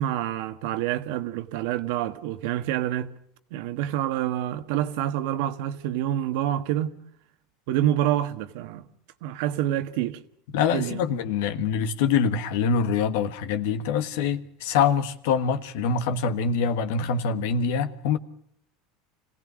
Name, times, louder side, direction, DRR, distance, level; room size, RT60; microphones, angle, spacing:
voice 1, 0.0-3.1 3.5-6.9 7.7-8.8 9.2-10.2 10.7-11.0, right 12 dB, 70° right, 1.5 m, -27 dB
voice 2, 10.5-18.2, left 6 dB, 75° left, 1.5 m, -25 dB
26.5 x 17.0 x 6.3 m
supercardioid pair, 105°, 0 cm